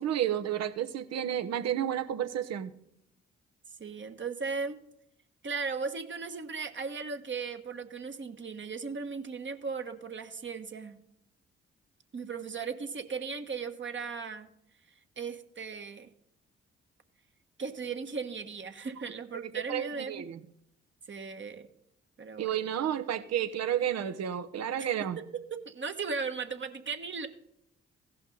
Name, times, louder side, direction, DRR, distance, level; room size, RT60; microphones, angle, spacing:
voice 1, 0.0-2.8 19.7-20.4 22.4-25.2, right 10 dB, 60° right, 10 dB, 1.0 m, -31 dB
voice 2, 3.8-4.8 5.4-11.0 12.1-14.5 15.2-16.1 17.6-20.3 21.1-21.7 22.2-22.5 24.8-24.9 25.5-27.3, right 5 dB, 40° right, 6 dB, 1.4 m, -37 dB
16.5 x 5.7 x 3.9 m, 0.75 s
hypercardioid pair, 40°, 30 cm